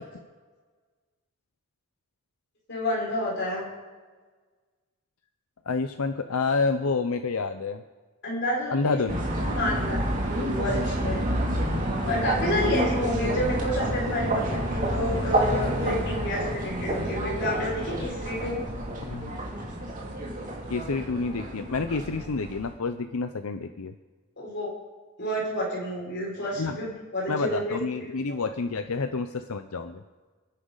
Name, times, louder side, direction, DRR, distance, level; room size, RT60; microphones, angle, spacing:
voice 1, 2.7-3.7 8.2-9.0 9.6-11.2 12.0-18.6 24.4-24.7 25.2-28.4, left 1 dB, 55° left, -4 dB, 5.6 m, -30 dB
voice 2, 5.7-7.8 8.7-9.2 19.1-19.5 20.7-23.9 26.6-26.8 27.3-30.0, left 4 dB, 90° left, 8 dB, 0.7 m, -28 dB
sound 1, 9.1-22.7, right 1 dB, 35° right, 2.7 m, -29 dB
28.5 x 10.0 x 4.0 m, 1.4 s
head